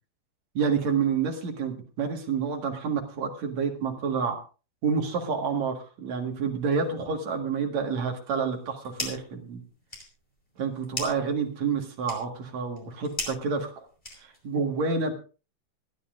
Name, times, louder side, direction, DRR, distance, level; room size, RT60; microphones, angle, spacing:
voice 1, 0.5-4.4 4.8-9.6 10.6-13.8 14.2-15.1, right 5 dB, 55° right, 3 dB, 2.4 m, -28 dB
sound 1, 8.5-9.4 9.7-14.6, left 1 dB, 10° left, 3.4 m, -39 dB
26.0 x 9.9 x 2.5 m, 0.34 s
omnidirectional pair, 4.8 m